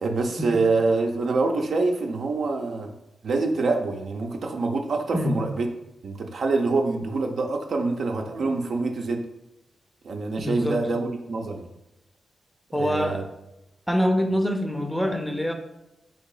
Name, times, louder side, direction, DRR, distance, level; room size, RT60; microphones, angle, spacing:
voice 1, 0.0-3.0 3.2-5.7 6.0-9.2 10.0-11.7 12.7-13.2, right 3 dB, 70° right, 3 dB, 0.5 m, -25 dB
voice 2, 10.4-10.8 12.7-13.3 13.9-15.5, equal, 5° left, 5 dB, 0.5 m, -25 dB
3.7 x 2.9 x 4.8 m, 0.91 s
cardioid pair, 70°, 0 cm